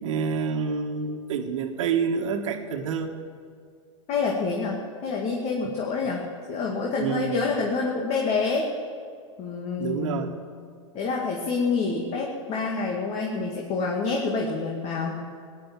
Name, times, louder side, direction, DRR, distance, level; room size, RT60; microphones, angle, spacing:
voice 1, 0.0-3.1 7.0-7.5 9.8-10.3, right 6 dB, 75° right, 5 dB, 1.7 m, -28 dB
voice 2, 4.1-8.7 9.4-10.3 10.9-15.2, left 4 dB, 40° left, -1 dB, 2.2 m, -27 dB
17.5 x 9.9 x 7.6 m, 2.1 s
hypercardioid pair, 115°, 17 cm